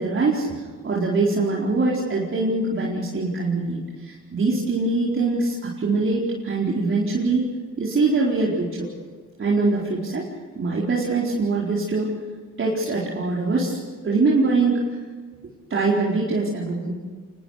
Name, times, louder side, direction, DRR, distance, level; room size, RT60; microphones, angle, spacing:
voice 1, 0.0-8.9 9.4-10.3 10.5-12.1 12.6-13.8 14.0-14.8 15.7-16.9, right 3 dB, 40° right, -5 dB, 4.6 m, -23 dB
26.5 x 20.5 x 6.7 m, 1.5 s
cardioid pair, 90°, 30 cm